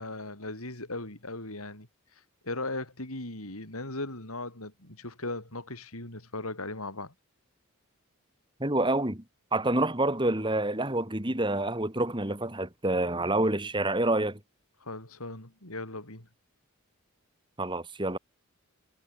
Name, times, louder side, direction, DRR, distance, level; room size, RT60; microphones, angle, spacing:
voice 1, 0.0-1.9 2.4-7.1 14.8-16.3, left 2 dB, 80° left, 7.2 m, -38 dB
voice 2, 8.6-9.2 9.5-14.4 17.6-18.2, right 2 dB, 20° right, 2.9 m, -27 dB
head